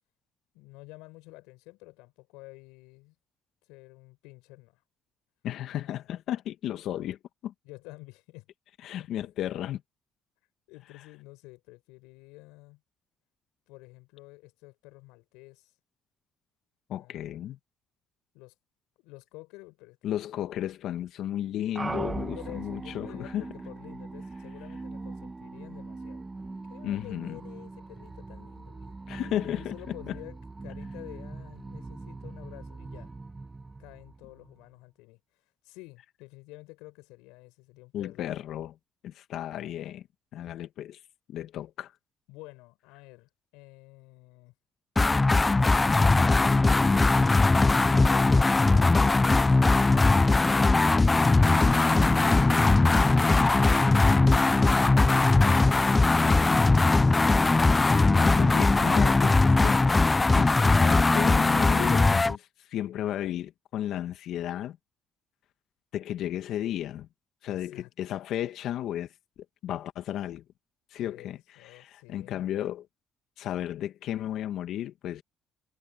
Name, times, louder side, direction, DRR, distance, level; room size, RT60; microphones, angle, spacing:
voice 1, 0.5-3.2 3.6-4.8 5.7-6.2 7.6-8.5 9.0-9.3 10.7-12.8 13.7-15.8 16.9-17.4 18.3-18.6 19.0-20.2 22.3-29.0 29.6-33.1 33.8-38.3 42.3-44.5 47.9-50.4 67.5-67.9 71.0-72.5, left 23 dB, 90° left, 5.5 m, -50 dB
voice 2, 5.4-7.2 7.4-7.5 8.8-9.8 16.9-17.6 20.0-23.4 26.8-27.4 29.1-29.7 30.1-30.2 37.9-38.8 39.0-40.0 40.3-41.0 41.3-41.9 58.2-64.8 65.9-67.1 67.4-69.1 69.6-70.4 70.9-72.8 73.4-75.2, left 11 dB, 70° left, 1.6 m, -34 dB
sound 1, 21.8-34.6, right 3 dB, 25° right, 1.4 m, -40 dB
sound 2, 45.0-62.4, left 3 dB, 20° left, 0.4 m, -20 dB
supercardioid pair, 70°, 0 cm